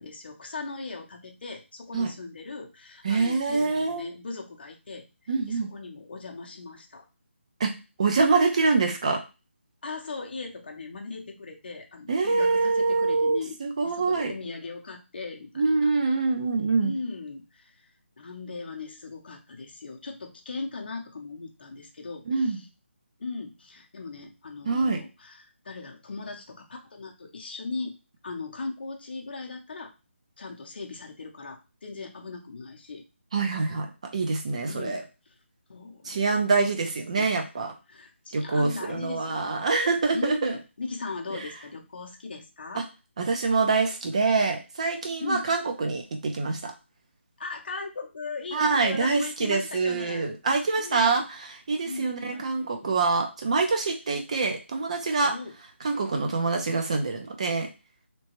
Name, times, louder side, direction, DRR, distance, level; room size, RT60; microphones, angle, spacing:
voice 1, 0.0-5.0 5.5-7.1 9.8-13.6 13.8-15.5 15.8-15.9 16.8-17.8 18.2-22.7 23.2-28.0 28.2-29.9 30.4-33.0 34.7-35.3 35.7-36.7 37.2-37.3 37.9-39.7 40.1-42.8 45.2-45.4 47.4-50.4 50.7-51.2 51.9-53.3 55.2-55.5, left 4 dB, 50° left, 3 dB, 0.7 m, -38 dB
voice 2, 3.0-4.1 5.3-5.7 7.6-7.7 8.0-9.2 12.1-14.3 15.6-16.9 22.3-22.6 24.7-25.0 33.3-33.9 34.1-35.0 36.0-37.7 38.3-40.5 41.4-41.5 42.7-42.8 43.2-46.7 48.5-55.3 55.8-57.7, right 4 dB, 30° right, 4 dB, 0.5 m, -25 dB
2.9 x 2.2 x 2.9 m, 0.29 s
figure-of-eight pair, 170°, 7 cm